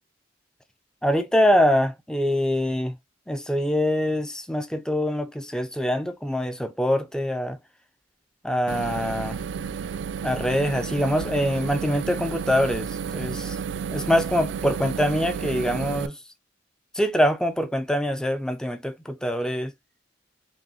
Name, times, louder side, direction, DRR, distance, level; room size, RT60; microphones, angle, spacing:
voice 1, 1.0-3.0 3.3-7.6 8.4-9.4 10.2-16.2 16.9-19.7, equal, 5° left, 0.4 m, -24 dB
sound 1, 8.7-16.1, right 7 dB, 70° right, 0.3 m, -32 dB
5.2 x 2.2 x 2.7 m
head